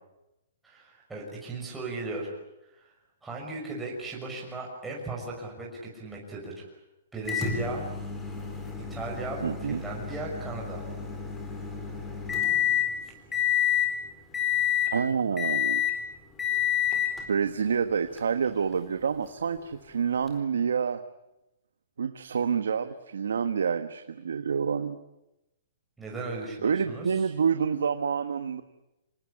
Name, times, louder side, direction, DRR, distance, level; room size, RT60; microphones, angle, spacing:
voice 1, 0.6-2.3 2.8-2.9 3.2-6.7 7.1-7.9 8.9-10.8 26.0-27.3, right 3 dB, 5° right, -3 dB, 5.9 m, -36 dB
Microwave oven, 7.3-12.9 13.3-13.9 14.3-15.0 15.4-16.0 16.4-17.2 18.2-18.3 20.3-20.4, left 9 dB, 10° left, 4.2 m, -28 dB
voice 2, 9.4-9.8 14.9-15.8 17.3-21.0 22.0-25.0 26.6-28.6, right 6 dB, 90° right, 9 dB, 1.4 m, -28 dB
26.5 x 19.5 x 9.9 m, 0.92 s
hypercardioid pair, 155°, 0 cm